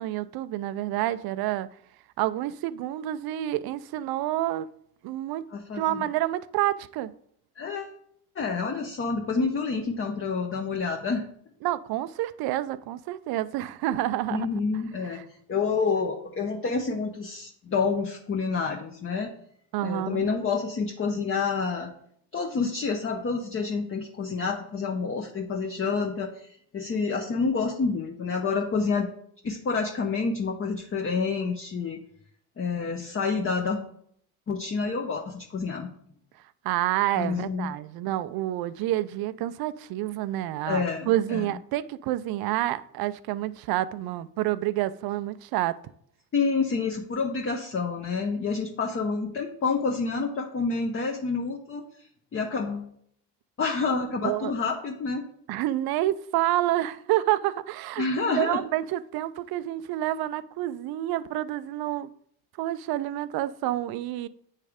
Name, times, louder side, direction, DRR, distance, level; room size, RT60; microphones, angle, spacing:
voice 1, 0.0-1.7 2.2-4.7 5.0-5.4 5.8-7.1 11.6-14.5 15.1-15.2 19.7-20.2 36.6-45.8 54.2-54.5 55.5-62.1 62.6-64.3, right 14 dB, 60° right, 0.5 m, -28 dB
voice 2, 5.5-6.1 7.6-7.9 8.4-11.2 14.3-15.2 15.5-19.3 19.8-21.9 22.3-29.1 29.4-32.0 32.6-33.9 34.5-35.9 37.2-37.7 40.6-41.4 46.3-51.8 52.3-52.9 53.6-55.2 58.0-58.6, left 4 dB, 30° left, 0.8 m, -28 dB
8.3 x 3.2 x 5.0 m
supercardioid pair, 85°, 42 cm